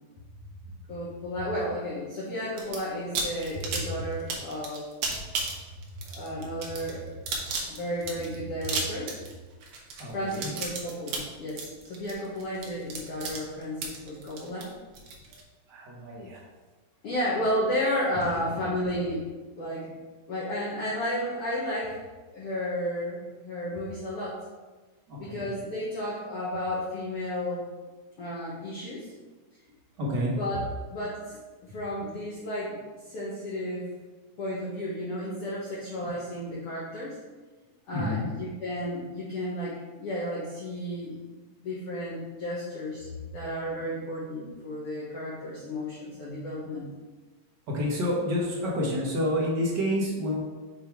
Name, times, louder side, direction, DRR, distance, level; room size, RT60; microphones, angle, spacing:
voice 1, 0.9-4.8 6.0-7.0 7.7-9.1 10.1-14.7 17.0-19.3 19.5-19.9 20.3-22.0 22.3-24.4 25.2-27.7 28.2-29.1 30.4-30.6 30.9-32.8 33.0-33.9 34.4-37.2 37.9-39.7 40.0-41.2 41.6-43.1 43.3-46.9, equal, 60° left, -8 dB, 1.8 m, -32 dB
sound 1, 2.6-2.8 3.2-15.4, right 4 dB, 70° right, 2.0 m, -34 dB
voice 2, 10.0-10.5 15.3-15.4 15.7-16.4 18.2-18.3 25.1-25.5 30.0-30.4 37.9-38.3 47.7-50.4, left 1 dB, 55° right, -3 dB, 1.3 m, -29 dB
7.0 x 3.5 x 4.5 m, 1.3 s
omnidirectional pair, 3.3 m